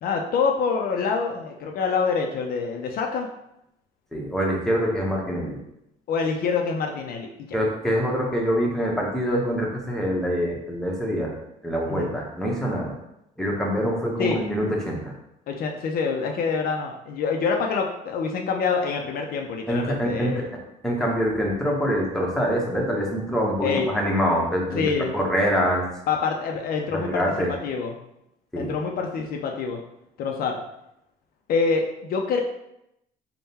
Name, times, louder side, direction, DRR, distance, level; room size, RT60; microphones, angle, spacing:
voice 1, 0.0-3.3 6.1-7.6 11.9-12.1 14.2-14.4 15.5-20.4 23.6-23.9 24.7-25.1 26.1-27.2 27.6-28.0 28.6-29.8 30.2-30.6 31.5-32.4, left 5 dB, 60° left, 3 dB, 0.5 m, -26 dB
voice 2, 4.1-5.6 7.5-11.3 11.6-13.0 13.4-15.1 19.7-20.4 20.8-24.8 25.1-25.8 26.9-27.5 28.5-28.7, equal, 5° left, -2 dB, 0.9 m, -25 dB
3.6 x 2.1 x 4.1 m, 0.83 s
cardioid pair, 110°, 17 cm